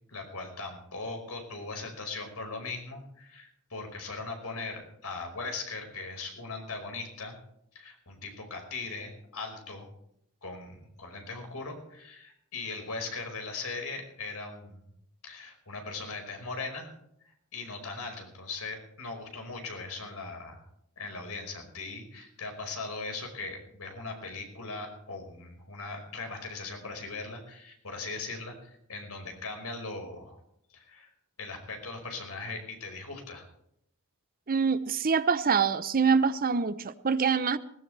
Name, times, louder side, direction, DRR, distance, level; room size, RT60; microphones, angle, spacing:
voice 1, 0.1-7.4 7.7-9.9 10.4-14.8 15.2-16.9 17.5-20.6 21.0-30.4 30.7-31.1 31.4-33.5, left 3 dB, 75° left, 4 dB, 5.1 m, -39 dB
voice 2, 34.5-37.6, right 5 dB, 40° right, 13 dB, 0.7 m, -25 dB
20.0 x 18.5 x 3.4 m, 0.74 s
head